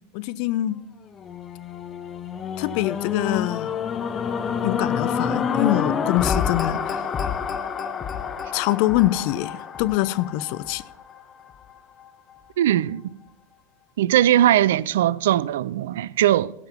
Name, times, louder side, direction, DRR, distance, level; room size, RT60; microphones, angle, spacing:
voice 1, 0.1-0.8 2.6-3.7 4.6-7.0 8.5-10.8, left 15 dB, 50° left, 0.5 m, -24 dB
sound 1, 1.1-11.4 12.0-12.1, left 7 dB, 25° left, 1.0 m, -28 dB
voice 2, 12.6-13.2 14.0-16.5, right 12 dB, 65° right, 0.4 m, -20 dB
14.0 x 5.8 x 7.1 m
figure-of-eight pair, 90°, 0 cm